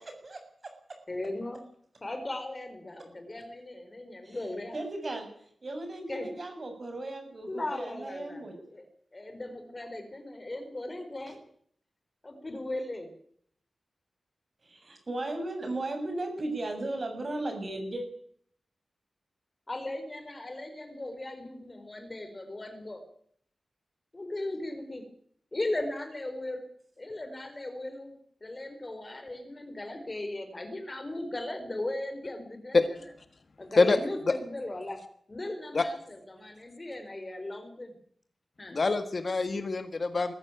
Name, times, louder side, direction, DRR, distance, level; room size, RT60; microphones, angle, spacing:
voice 1, 0.2-0.7 4.2-4.4 4.7-5.3 5.6-8.6 11.3-11.4 14.6-18.1, right 2 dB, 35° right, 5 dB, 7.3 m, -36 dB
voice 2, 1.1-1.6 2.0-4.8 6.1-6.3 7.5-8.4 8.7-8.9 9.1-11.4 12.2-13.1 19.7-23.0 24.1-25.0 25.5-26.6 27.0-33.1 33.6-35.0 35.3-37.9 38.6-38.8, left 1 dB, 25° left, 7 dB, 4.2 m, -37 dB
voice 3, 38.7-40.3, left 3 dB, 40° left, 9 dB, 1.6 m, -25 dB
22.0 x 14.5 x 9.1 m, 0.63 s
wide cardioid pair, 160°, 0 cm